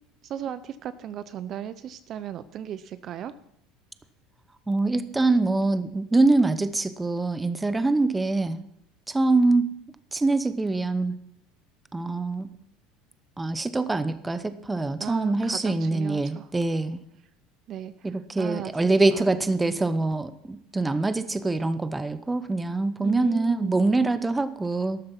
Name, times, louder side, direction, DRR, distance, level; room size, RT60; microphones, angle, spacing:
voice 1, 0.2-3.3 15.0-16.5 17.7-18.1 18.4-19.3 23.0-23.8, right 10 dB, 40° right, 13 dB, 0.6 m, -36 dB
voice 2, 4.7-8.6 9.1-9.7 10.1-11.2 11.9-12.5 13.4-17.0 18.0-25.0, right 2 dB, 10° right, 12 dB, 0.8 m, -24 dB
13.0 x 12.5 x 5.9 m, 0.75 s
cardioid pair, 145°, 0 cm